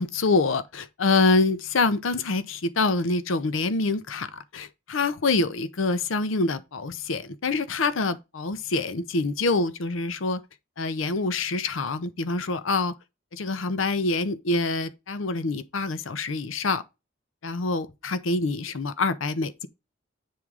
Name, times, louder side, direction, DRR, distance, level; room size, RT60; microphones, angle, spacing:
voice 1, 0.0-10.4 10.8-12.9 13.3-16.8 17.4-19.7, left 3 dB, 85° left, 0.7 m, -26 dB
8.6 x 3.7 x 4.7 m
head